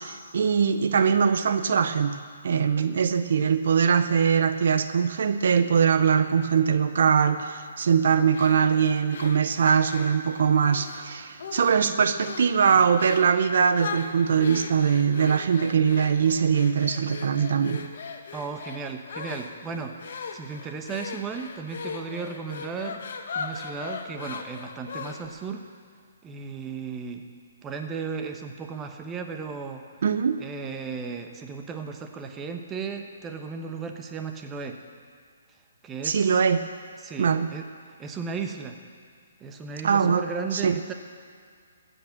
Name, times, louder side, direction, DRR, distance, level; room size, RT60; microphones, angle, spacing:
voice 1, 0.0-17.8 30.0-30.4 36.0-36.6 37.2-37.5 39.8-40.8, right 6 dB, 65° right, 10 dB, 0.7 m, -22 dB
sound 1, 8.3-11.0 11.4-11.9 12.2-12.6 13.0-13.3 13.7-25.4, left 5 dB, 60° left, 1.4 m, -39 dB
voice 2, 18.3-23.0 23.3-25.6 26.2-27.2 27.6-29.8 30.4-34.8 35.8-36.4 37.0-37.7 38.0-38.8 39.4-40.9, right 5 dB, 15° right, 5 dB, 1.0 m, -35 dB
15.0 x 8.3 x 7.4 m, 2.1 s
hypercardioid pair, 150°, 0 cm